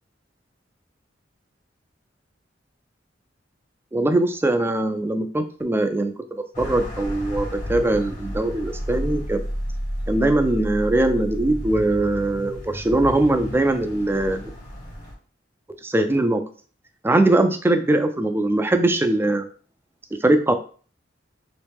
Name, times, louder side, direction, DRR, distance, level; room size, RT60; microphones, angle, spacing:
voice 1, 3.9-6.1 6.6-9.4 10.1-14.5 15.8-16.4 17.0-19.5 20.2-20.5, right 2 dB, 15° right, 7 dB, 0.4 m, -21 dB
sound 1, 6.5-15.1, equal, 40° left, 1.1 m, -31 dB
3.1 x 3.1 x 3.4 m, 0.41 s
head